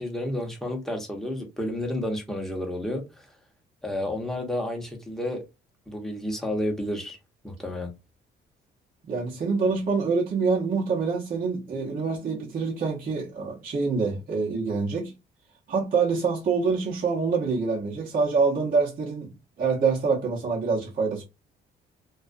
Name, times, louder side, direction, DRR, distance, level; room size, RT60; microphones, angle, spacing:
voice 1, 0.0-3.3 3.8-5.4 5.9-7.2 7.4-7.9, left 1 dB, ahead, 0.9 m, -31 dB
voice 2, 9.1-15.1 15.7-21.2, right 4 dB, 45° right, 0.8 m, -26 dB
2.3 x 2.3 x 2.5 m
cardioid pair, 90°, 20 cm